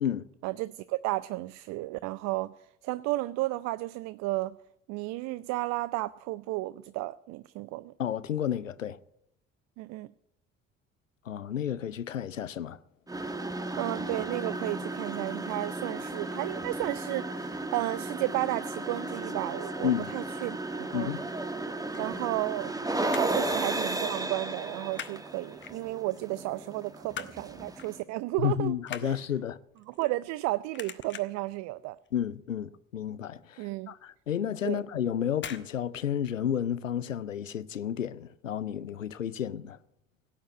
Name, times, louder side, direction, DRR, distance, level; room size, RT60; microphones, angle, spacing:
voice 1, 0.4-4.6 4.9-7.9 9.8-10.1 13.8-21.1 22.0-22.7 23.1-28.7 29.0-29.2 29.9-32.0 33.6-33.9 34.6-34.8, right 19 dB, 45° right, 0.5 m, -33 dB
voice 2, 8.0-9.0 11.3-12.8 19.8-20.1 20.9-21.2 28.4-29.6 32.1-39.8, left 9 dB, 85° left, 0.5 m, -31 dB
sound 1, 13.1-28.0, right 2 dB, 10° right, 1.2 m, -34 dB
sound 2, 21.9-22.7 23.0-23.5 23.8-24.1 24.3-25.2 25.6-26.2 26.6-27.4 27.8-28.0 28.3-30.4 30.7-31.5 31.9-32.3 32.5-32.6 33.0-33.1 33.5-33.6 34.5-34.7 35.3-35.7 36.0-36.1, left 8 dB, 30° left, 1.2 m, -42 dB
17.0 x 8.8 x 9.0 m
figure-of-eight pair, 55°, 38 cm